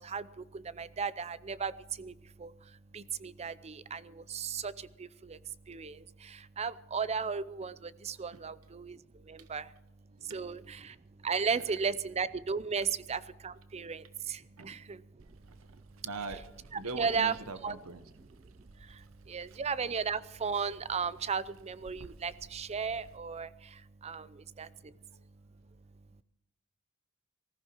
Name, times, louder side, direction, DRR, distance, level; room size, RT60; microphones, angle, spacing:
voice 1, 0.0-16.1 16.7-17.3 17.6-17.8 18.2-26.2, right 5 dB, 30° right, 16 dB, 0.5 m, -36 dB
Water, 15.2-23.2, right 3 dB, 65° right, 0.7 m, -57 dB
voice 2, 15.5-16.4 16.8-18.0 24.6-25.3 26.0-26.1, right 3 dB, 90° right, 10 dB, 1.0 m, -43 dB
19.0 x 14.5 x 4.5 m, 0.83 s
head